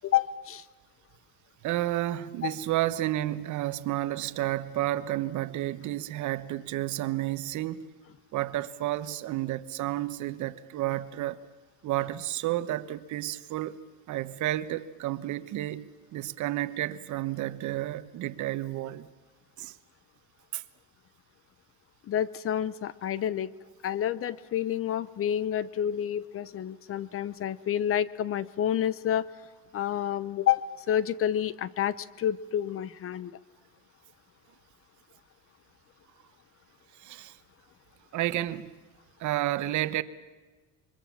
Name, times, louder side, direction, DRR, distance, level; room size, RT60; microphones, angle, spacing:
voice 1, 0.0-0.6 2.4-2.5 22.1-23.5 23.8-29.3 29.7-33.3, left 10 dB, 40° left, 0.8 m, -29 dB
voice 2, 1.6-7.8 8.3-11.4 11.8-13.8 14.1-15.8 16.1-19.1 19.6-19.7 20.5-20.6 37.0-37.3 38.1-38.7 39.2-40.0, right 15 dB, 60° right, 1.1 m, -31 dB
25.5 x 23.5 x 7.3 m
cardioid pair, 115°, 33 cm